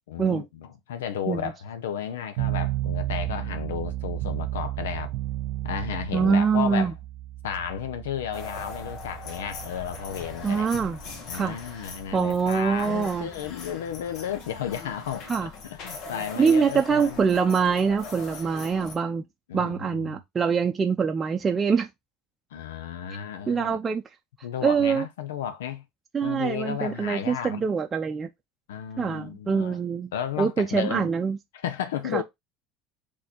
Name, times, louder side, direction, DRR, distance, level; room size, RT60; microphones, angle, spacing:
voice 1, 0.1-5.1 5.6-6.9 7.4-10.7 11.3-17.2 19.5-20.2 22.5-23.8 24.4-25.8 26.2-27.6 28.7-29.8 30.1-31.1 31.5-32.2, left 9 dB, 90° left, 0.6 m, -33 dB
sound 1, 2.4-13.5, right 16 dB, 70° right, 0.5 m, -34 dB
voice 2, 6.1-6.9 10.4-11.0 11.3-11.6 12.1-13.3 15.3-15.5 16.4-19.2 19.5-21.9 23.5-24.0 24.6-25.0 26.1-28.3 29.0-30.1 30.4-31.4 32.1-32.2, right 6 dB, 30° right, 0.6 m, -24 dB
sound 2, 8.3-19.0, left 4 dB, 60° left, 1.6 m, -41 dB
4.1 x 2.8 x 4.3 m
supercardioid pair, 90°, 0 cm